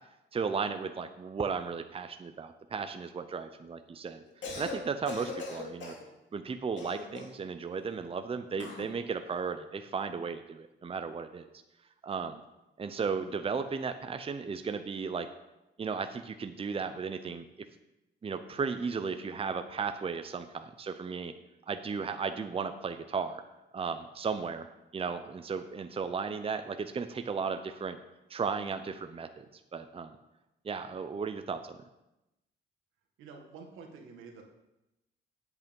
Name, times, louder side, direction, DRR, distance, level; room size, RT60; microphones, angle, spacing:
voice 1, 0.3-4.2 4.6-5.9 6.3-11.5 12.0-12.4 12.8-15.3 15.8-17.4 18.2-21.3 21.7-23.4 23.7-24.7 24.9-28.0 28.3-29.5 29.7-30.1 30.6-31.8, right 5 dB, 30° right, 8 dB, 0.7 m, -35 dB
Cough, 4.3-4.8 5.1-6.0 6.8-7.4 8.6-8.9, left 4 dB, 70° left, 2.6 m, -40 dB
voice 2, 33.2-34.4, right 5 dB, 85° right, 1 dB, 1.9 m, -48 dB
8.3 x 8.3 x 5.4 m, 0.94 s
cardioid pair, 90°, 20 cm